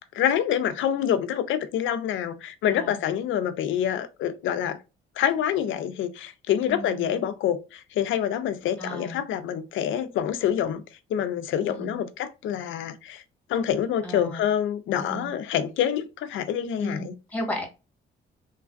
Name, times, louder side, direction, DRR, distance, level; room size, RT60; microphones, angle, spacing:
voice 1, 0.1-4.8 5.2-10.8 11.1-13.2 13.5-17.1, left 9 dB, 75° left, 0.5 m, -26 dB
voice 2, 6.7-7.2 8.8-9.2 11.6-12.0 14.0-14.4 15.0-15.3 16.8-17.7, equal, 10° left, 1.3 m, -35 dB
3.1 x 2.3 x 2.4 m
cardioid pair, 90°, 20 cm